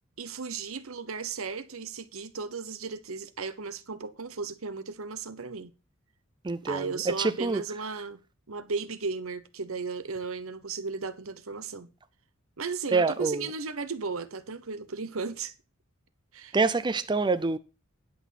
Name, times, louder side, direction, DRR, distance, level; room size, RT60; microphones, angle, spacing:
voice 1, 0.2-5.7 6.6-8.2 8.5-11.9 12.6-15.5 16.3-16.6, right 4 dB, 80° right, 1.0 m, -35 dB
voice 2, 6.4-6.9 7.2-7.6 12.9-13.5 16.5-17.6, right 3 dB, 20° right, 0.5 m, -26 dB
10.5 x 6.2 x 5.9 m
head